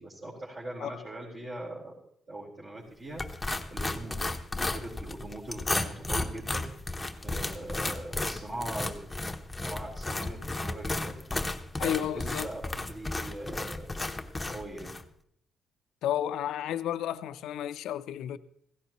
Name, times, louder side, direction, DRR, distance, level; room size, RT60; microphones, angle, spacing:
voice 1, 0.0-1.9 2.3-6.8 7.2-9.0 9.5-11.1 11.7-13.8 14.5-15.0, right 1 dB, 40° right, 4.3 m, -41 dB
sound 1, 3.2-15.0, left 2 dB, 15° left, 0.9 m, -34 dB
voice 2, 11.8-12.5 16.0-18.4, left 11 dB, 85° left, 0.5 m, -32 dB
16.0 x 16.0 x 3.0 m
cardioid pair, 90°, 0 cm